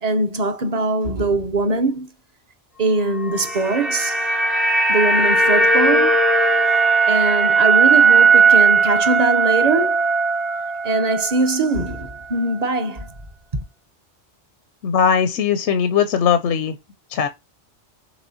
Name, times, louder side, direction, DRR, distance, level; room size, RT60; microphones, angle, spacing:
voice 1, 0.0-2.1 2.8-4.2 4.9-6.2 7.1-10.0 10.8-13.1 13.5-13.6, right 3 dB, 40° right, 0.7 m, -21 dB
sound 1, 3.2-11.5 11.8-12.0, right 4 dB, ahead, 0.3 m, -17 dB
voice 2, 14.8-16.8 17.1-17.3, left 7 dB, 80° left, 0.9 m, -19 dB
6.1 x 3.1 x 2.6 m
omnidirectional pair, 1.2 m